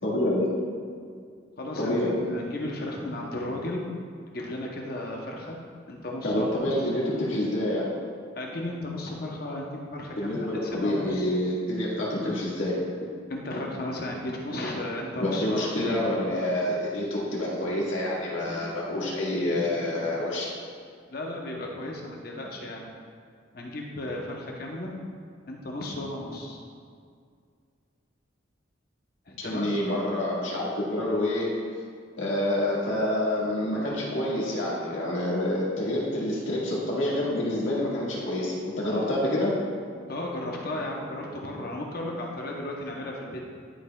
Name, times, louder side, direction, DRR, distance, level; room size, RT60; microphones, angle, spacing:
voice 1, 0.0-0.5 1.8-2.1 6.2-7.9 10.2-12.8 15.2-20.5 29.4-31.6 32.2-39.6, left 1 dB, 85° left, -5 dB, 1.8 m, -27 dB
voice 2, 1.6-2.0 2.3-3.8 4.3-5.6 5.9-6.9 8.3-11.4 13.3-16.0 21.1-22.9 23.5-24.9 25.5-26.6 29.3-29.7 40.1-43.4, left 1 dB, 50° left, -1 dB, 0.8 m, -34 dB
11.0 x 5.4 x 2.3 m, 2.2 s
head